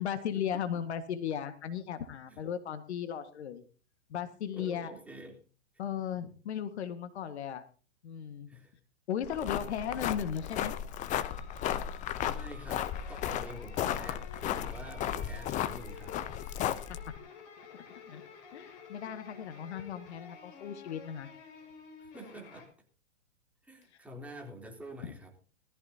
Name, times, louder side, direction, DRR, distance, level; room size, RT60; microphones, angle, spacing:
voice 1, 0.0-3.6 4.1-4.9 5.8-7.6 8.0-8.5 9.1-10.7 17.7-18.2 18.5-21.3, left 9 dB, 60° left, 10 dB, 1.8 m, -36 dB
voice 2, 0.5-0.8 2.3-2.4 4.5-5.4 8.5-8.7 9.4-9.7 12.2-16.2 22.0-22.7 23.6-25.3, equal, 5° right, 0 dB, 3.4 m, -47 dB
sound 1, 9.2-17.2, left 10 dB, 20° left, 0.8 m, -35 dB
sound 2, 11.0-22.7, left 5 dB, 45° left, 5.4 m, -52 dB
20.5 x 14.0 x 2.8 m, 0.37 s
hypercardioid pair, 130°, 37 cm